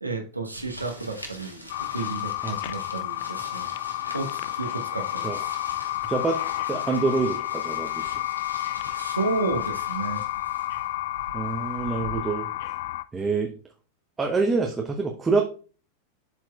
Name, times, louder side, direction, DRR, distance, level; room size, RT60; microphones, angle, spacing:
voice 1, 0.0-3.7 4.1-5.5 8.9-10.5, right 3 dB, 85° right, 2 dB, 1.0 m, -32 dB
sound 1, 0.5-12.2, equal, 85° left, 1.3 m, -44 dB
sound 2, 1.7-13.0, left 16 dB, 50° left, 0.3 m, -31 dB
voice 2, 6.1-6.4 6.7-8.1 11.3-12.7 13.1-13.5 14.2-15.4, right 4 dB, 15° right, 2 dB, 0.8 m, -26 dB
11.5 x 4.5 x 2.3 m, 0.38 s
figure-of-eight pair, 90°, 0 cm